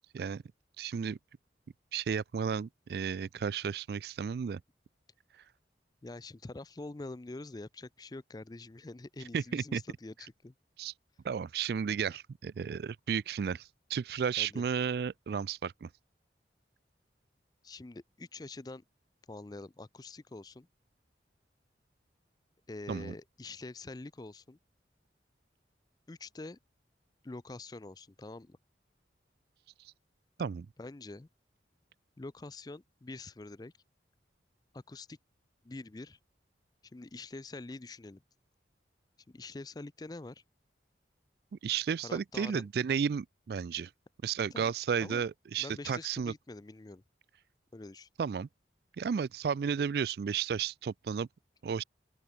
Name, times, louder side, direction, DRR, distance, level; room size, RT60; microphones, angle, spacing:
voice 1, 0.8-1.2 1.9-4.6 9.3-9.8 10.8-10.9 11.2-15.9 22.9-23.1 30.4-30.7 41.6-43.9 44.2-46.3 48.2-48.5 49.0-51.3 51.6-51.8, right 6 dB, 60° right, 0.3 m, -33 dB
voice 2, 6.0-10.5 14.4-14.7 17.6-18.8 19.3-20.7 22.7-24.6 26.1-26.6 27.2-28.6 30.8-31.3 32.2-33.7 34.7-35.2 35.6-36.2 36.9-38.2 39.3-40.4 42.0-42.7 44.5-44.7 45.0-45.3 45.6-47.0 47.7-48.1, left 2 dB, 20° left, 0.4 m, -45 dB
open air
head